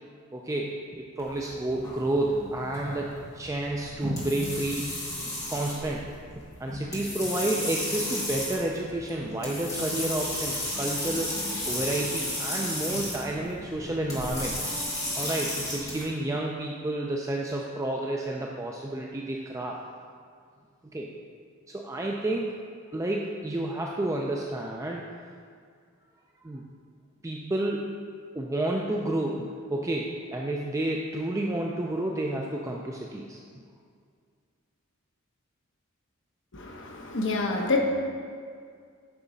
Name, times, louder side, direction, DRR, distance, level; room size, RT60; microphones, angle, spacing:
voice 1, 0.3-4.9 5.5-6.1 6.6-14.5 15.1-19.8 20.9-21.1 21.7-22.6 22.9-25.1 26.4-26.7 27.2-27.9 28.3-33.4, right 1 dB, 15° right, -1 dB, 0.4 m, -30 dB
sound 1, 1.2-16.0, left 1 dB, 15° left, 1.9 m, -33 dB
voice 2, 36.5-37.8, left 3 dB, 60° left, 1 dB, 1.0 m, -27 dB
9.2 x 6.1 x 4.0 m, 2.1 s
head